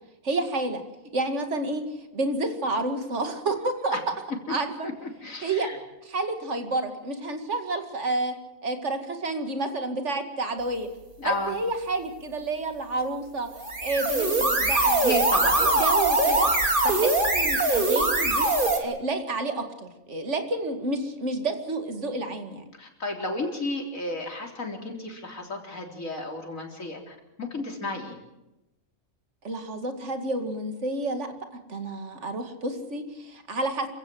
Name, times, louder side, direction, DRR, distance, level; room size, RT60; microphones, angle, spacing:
voice 1, 0.2-0.8 1.1-4.0 4.5-4.9 5.4-5.7 6.1-8.3 8.6-10.9 11.3-13.5 13.8-15.0 15.6-16.5 16.8-22.6 29.4-31.3 31.7-33.9, right 2 dB, 60° right, 7 dB, 2.5 m, -30 dB
voice 2, 4.8-5.8 11.2-11.5 15.0-15.7 16.3-16.4 22.8-28.2, left 2 dB, 80° left, 2 dB, 4.2 m, -32 dB
sound 1, 13.5-18.8, right 2 dB, 40° right, 2.9 m, -22 dB
27.5 x 16.0 x 7.8 m, 0.95 s
omnidirectional pair, 1.4 m